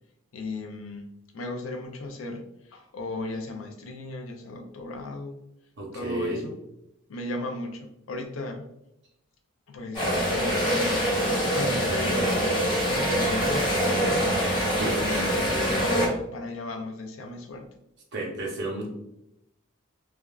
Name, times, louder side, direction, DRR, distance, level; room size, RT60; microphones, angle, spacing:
voice 1, 0.3-2.4 2.7-5.4 5.9-6.5 7.1-8.7 9.7-11.2 11.5-12.3 12.8-14.6 15.0-17.7, left 2 dB, 75° left, 5 dB, 0.4 m, -36 dB
voice 2, 5.8-6.4 14.7-15.0 18.1-18.9, right 2 dB, 60° right, -1 dB, 0.7 m, -31 dB
sound 1, 9.9-16.1, equal, 25° left, 1.2 m, -24 dB
3.3 x 2.3 x 2.3 m, 0.84 s
head